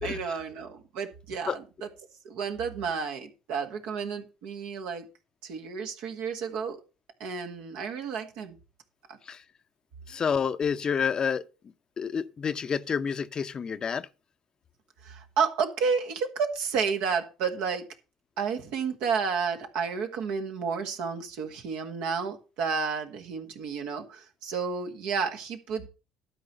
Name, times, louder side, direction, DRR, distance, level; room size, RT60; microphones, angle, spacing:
voice 1, 0.0-1.9 2.2-5.0 5.4-6.8 7.2-8.6 9.1-9.2 15.0-17.8 18.4-25.9, right 6 dB, 70° right, 1.7 m, -31 dB
voice 2, 10.1-11.4 12.0-14.1, left 6 dB, 40° left, 0.7 m, -29 dB
12.0 x 4.8 x 6.8 m
hypercardioid pair, 65°, 2 cm